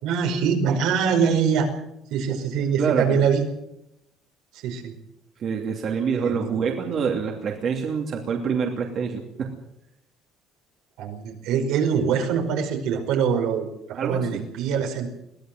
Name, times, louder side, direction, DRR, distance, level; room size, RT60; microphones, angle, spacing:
voice 1, 0.0-1.7 2.1-3.4 4.6-4.9 6.1-6.5 11.0-15.1, right 6 dB, 75° right, 3 dB, 5.1 m, -23 dB
voice 2, 5.4-9.5 13.9-14.4, right 6 dB, 40° right, 1 dB, 2.8 m, -26 dB
22.5 x 17.0 x 7.9 m, 0.83 s
cardioid pair, 165°, 0 cm